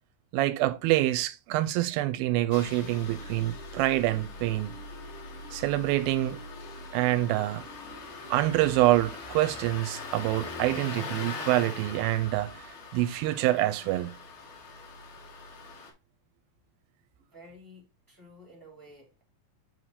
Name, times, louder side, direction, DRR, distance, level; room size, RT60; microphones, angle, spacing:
voice 1, 0.3-4.8 5.5-6.4 6.9-7.7 8.3-14.2, right 15 dB, 85° right, 2.4 m, -26 dB
Engine starting, 2.5-15.9, left 3 dB, 60° left, 2.1 m, -42 dB
sound 1, 2.6-9.8, equal, 60° right, 0.5 m, -51 dB
voice 2, 17.2-19.2, equal, 5° right, 1.7 m, -52 dB
7.8 x 3.1 x 4.1 m
omnidirectional pair, 4.2 m